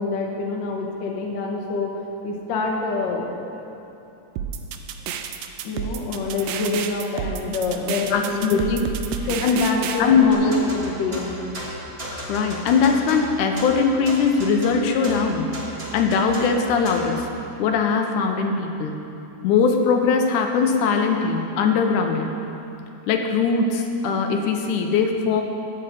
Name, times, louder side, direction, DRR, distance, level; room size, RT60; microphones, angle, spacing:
voice 1, 0.0-2.0 2.2-3.2 5.6-8.6 9.2-11.3, left 3 dB, 65° left, 0 dB, 1.2 m, -26 dB
sound 1, 4.4-10.0, right 7 dB, 85° right, 1.5 m, -30 dB
voice 2, 8.1-8.8 9.4-9.6 10.0-10.5 12.1-15.5 15.9-17.3 17.6-19.0 19.4-22.3 23.1-25.4, left 5 dB, 80° left, 3 dB, 2.1 m, -20 dB
sound 2, 10.3-17.2, equal, 40° right, 0.8 m, -35 dB
13.0 x 8.7 x 4.1 m, 2.9 s
omnidirectional pair, 3.6 m